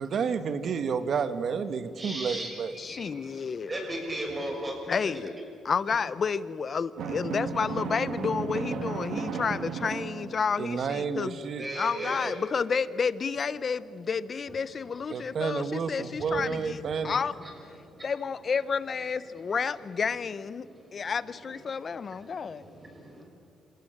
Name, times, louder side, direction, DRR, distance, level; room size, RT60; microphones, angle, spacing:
voice 1, 0.0-2.7 10.6-11.6 15.1-17.2, right 6 dB, 60° right, 11 dB, 1.4 m, -30 dB
voice 2, 2.0-3.2 3.7-4.9 11.6-12.3 15.1-15.2 16.2-17.2 17.4-17.5 22.6-23.2, right 1 dB, 25° right, 1 dB, 6.6 m, -37 dB
voice 3, 2.8-3.8 4.9-5.3 5.6-11.5 11.7-17.4 18.0-22.6, left 5 dB, 45° left, 17 dB, 0.8 m, -30 dB
Drum, 7.0-10.7, right 6 dB, 75° right, 1.5 m, -34 dB
27.0 x 17.0 x 8.0 m, 2.4 s
cardioid pair, 90°, 0 cm